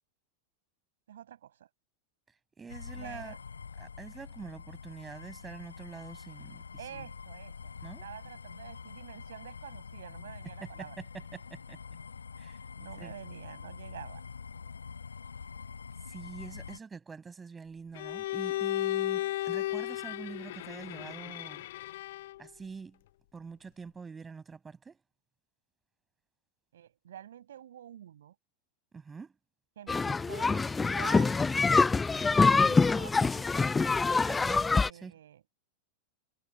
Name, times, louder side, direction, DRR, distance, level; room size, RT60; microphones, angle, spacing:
voice 1, 1.1-1.7 3.0-3.4 6.8-7.7 8.0-11.0 12.8-14.2 26.7-28.3 29.7-31.4 32.4-33.6 34.8-35.5, right 10 dB, 60° right, 6.7 m, -48 dB
voice 2, 2.6-3.3 3.8-6.6 7.0-7.1 7.8-8.0 10.6-11.8 12.4-12.6 13.0-13.1 16.1-21.6 22.4-23.0 23.3-25.0 28.9-29.3 34.3-35.1, right 5 dB, 15° right, 6.5 m, -45 dB
sound 1, 2.7-16.8, left 5 dB, 75° left, 6.4 m, -46 dB
Bowed string instrument, 17.9-22.5, left 15 dB, 55° left, 0.8 m, -34 dB
sound 2, 29.9-34.9, left 4 dB, 10° left, 0.3 m, -25 dB
figure-of-eight pair, 90°, 0 cm